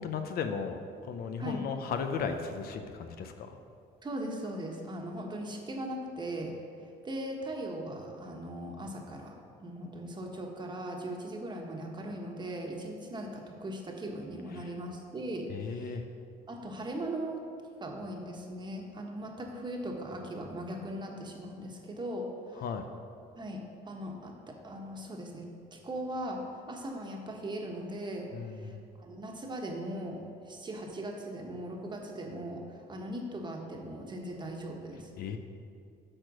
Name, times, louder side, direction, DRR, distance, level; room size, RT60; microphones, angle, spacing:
voice 1, 0.0-3.6 14.5-14.7 15.5-16.0 22.6-22.9 28.3-28.8 35.2-35.4, left 6 dB, 65° left, 7 dB, 0.7 m, -36 dB
voice 2, 4.0-6.5 7.0-16.0 16.5-17.4 17.8-22.6 23.4-26.4 26.7-35.1, right 1 dB, 25° right, 1 dB, 1.3 m, -39 dB
8.7 x 4.9 x 6.2 m, 2.4 s
cardioid pair, 110°, 17 cm